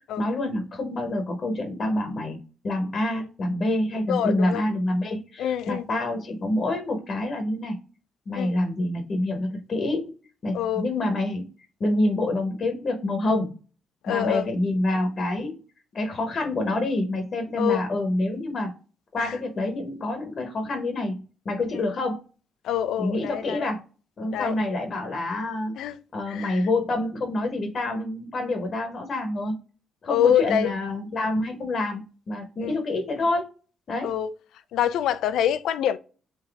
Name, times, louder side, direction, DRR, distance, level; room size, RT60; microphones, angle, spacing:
voice 1, 0.0-2.4 2.6-7.8 8.3-10.1 10.4-11.5 11.8-13.6 14.1-15.6 15.9-18.7 19.1-22.2 23.0-23.8 24.2-25.7 26.1-29.6 30.0-33.5 33.9-34.1, left 2 dB, 45° left, 0.9 m, -27 dB
voice 2, 4.1-4.6 5.4-5.8 8.3-8.5 10.5-10.8 14.0-14.5 17.6-17.8 19.2-19.3 21.7-21.8 22.6-23.7 24.3-24.5 25.8-26.0 26.3-26.6 30.1-30.7 32.6-32.7 34.0-34.3 34.7-36.0, left 10 dB, 80° left, 0.4 m, -25 dB
3.9 x 2.6 x 3.3 m
cardioid pair, 90°, 0 cm